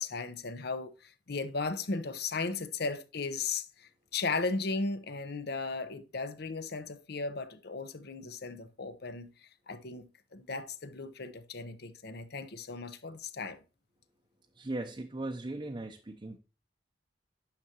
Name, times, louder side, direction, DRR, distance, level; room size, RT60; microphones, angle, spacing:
voice 1, 0.0-9.3 9.7-13.6, left 4 dB, 60° left, 0.8 m, -36 dB
voice 2, 14.5-16.4, right 2 dB, 25° right, 0.6 m, -38 dB
9.9 x 6.5 x 2.9 m
head